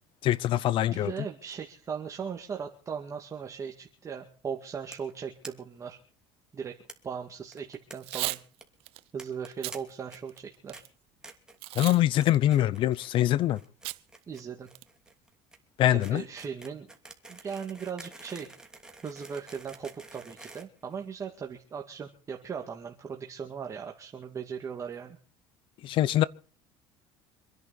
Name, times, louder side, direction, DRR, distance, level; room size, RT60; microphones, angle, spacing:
voice 1, 0.2-1.1 11.7-13.6 15.8-16.2 25.8-26.2, left 13 dB, 55° left, 0.9 m, -24 dB
voice 2, 0.9-6.0 6.5-6.7 7.0-8.4 9.1-10.8 14.3-14.7 15.9-16.9 17.3-18.5 19.0-25.2, right 6 dB, 30° right, 2.1 m, -38 dB
sound 1, 4.9-5.1 5.4-5.5 5.8-5.9 6.1-6.2 6.9-7.0 7.5-8.2 8.4-8.6 9.2-9.8 10.1-10.4 10.7-10.8 11.2-11.6 11.9-12.3 12.5-13.1 13.4-21.4, right 2 dB, 5° right, 2.8 m, -48 dB
Packing tape duct tape / Tearing, 7.9-8.4 8.9-9.0 9.5-9.8 10.3-10.9 11.6-12.0 12.3-12.4 13.8-14.0 14.4-14.5 14.7-15.1, right 19 dB, 65° right, 0.9 m, -35 dB
26.5 x 10.5 x 4.2 m
supercardioid pair, 110°, 10 cm